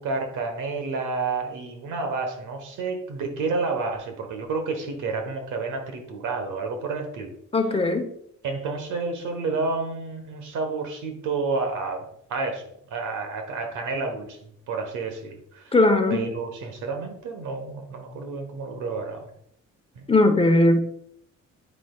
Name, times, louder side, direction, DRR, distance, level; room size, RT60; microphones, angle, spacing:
voice 1, 0.0-7.3 8.4-12.0 12.3-15.7 16.1-19.3 20.0-20.1, right 4 dB, 80° right, 5 dB, 1.3 m, -30 dB
voice 2, 7.5-8.1 15.7-16.3 20.1-20.8, left 2 dB, 20° left, 5 dB, 0.9 m, -19 dB
8.8 x 5.0 x 2.4 m, 0.72 s
cardioid pair, 90°, 30 cm